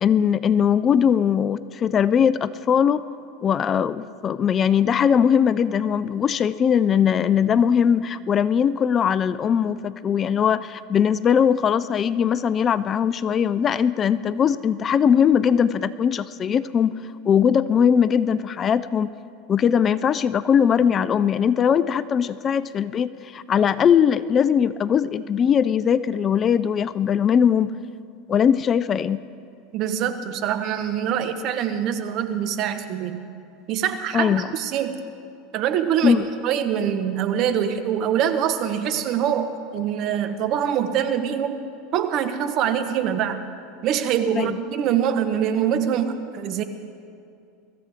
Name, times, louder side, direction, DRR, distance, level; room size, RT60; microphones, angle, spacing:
voice 1, 0.0-3.0 3.4-17.0 17.2-19.1 19.5-27.7 28.3-29.2 34.1-34.4 36.0-36.3 44.4-44.6, left 8 dB, 30° left, 16 dB, 0.4 m, -20 dB
voice 2, 29.7-33.2 33.7-34.9 35.5-36.2 36.4-41.6 41.9-43.4 43.8-46.6, right 9 dB, 50° right, 9 dB, 1.1 m, -24 dB
23.5 x 14.5 x 3.5 m, 2.4 s
supercardioid pair, 115°, 0 cm